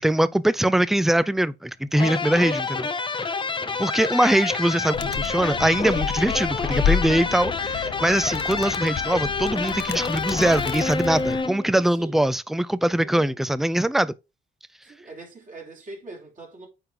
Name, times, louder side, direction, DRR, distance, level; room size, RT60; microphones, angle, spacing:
voice 1, 0.0-2.9 3.2-3.3 3.8-14.1, right 1 dB, ahead, 0.4 m, -22 dB
sound 1, 1.9-11.9, left 4 dB, 25° left, 0.7 m, -28 dB
voice 2, 3.4-3.9 11.9-12.3 13.0-13.4 14.8-16.7, right 2 dB, 40° right, 3.2 m, -43 dB
Animal, 4.9-11.4, left 9 dB, 65° left, 0.6 m, -30 dB
9.0 x 3.7 x 3.7 m
cardioid pair, 90°, 20 cm